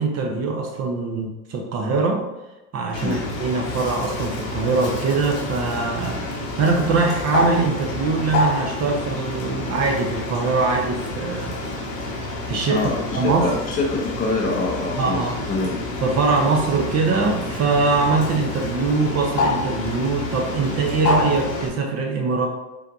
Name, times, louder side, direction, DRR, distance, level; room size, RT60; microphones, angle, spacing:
voice 1, 0.0-2.2 2.7-6.2 6.6-11.7 12.5-12.9 13.1-13.5 15.0-15.3 16.0-22.5, right 4 dB, 30° right, 2 dB, 0.8 m, -22 dB
Bird, 2.9-21.7, left 2 dB, 70° left, 1.3 m, -28 dB
voice 2, 12.7-15.8, left 3 dB, 15° left, -1 dB, 0.6 m, -25 dB
5.7 x 3.4 x 2.6 m, 1.0 s
hypercardioid pair, 85°, 49 cm